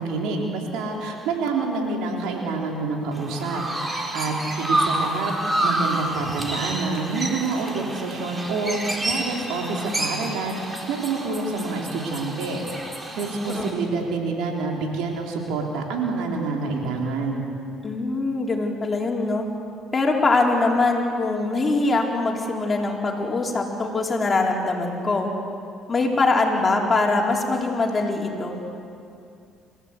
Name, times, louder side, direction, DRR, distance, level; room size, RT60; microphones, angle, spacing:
voice 1, 0.0-3.6 3.9-10.6 10.9-12.6 13.2-17.4, right 3 dB, 75° right, 0 dB, 3.7 m, -27 dB
Chirp tweet, 3.1-13.7, right 1 dB, 20° right, 4.3 m, -29 dB
voice 2, 17.8-19.5 19.9-25.3 25.9-28.6, left 3 dB, 30° left, 0 dB, 4.3 m, -23 dB
27.5 x 15.0 x 8.3 m, 2.5 s
hypercardioid pair, 65°, 0 cm